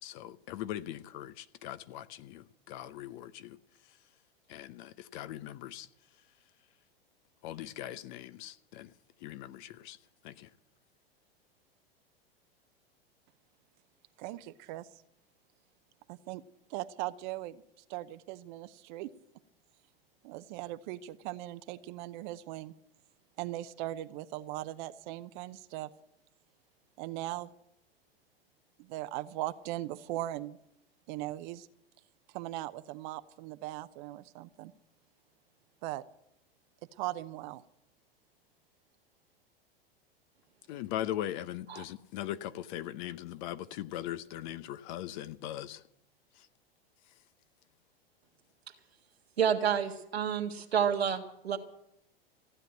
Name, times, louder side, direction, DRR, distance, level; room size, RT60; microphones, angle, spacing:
voice 1, 0.0-3.6 4.5-5.9 7.4-8.9 9.2-10.0 10.2-10.5 40.7-45.8 46.4-46.5, left 12 dB, 50° left, 0.8 m, -40 dB
voice 2, 14.2-14.9 16.1-16.4 16.7-17.6 17.9-19.1 20.2-22.7 23.4-25.9 27.0-27.5 28.8-30.6 31.1-31.7 32.3-34.7 35.8-36.0 37.0-37.6, right 15 dB, 50° right, 0.8 m, -39 dB
voice 3, 49.4-51.6, right 8 dB, 85° right, 1.6 m, -29 dB
15.5 x 9.1 x 8.9 m
hypercardioid pair, 95°, 31 cm